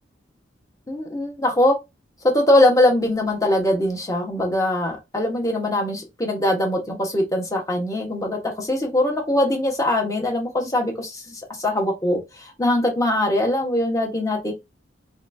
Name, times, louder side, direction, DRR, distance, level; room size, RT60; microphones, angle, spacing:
voice 1, 0.9-1.7 2.3-14.5, left 1 dB, 20° left, 1.2 m, -22 dB
4.2 x 4.0 x 2.7 m
head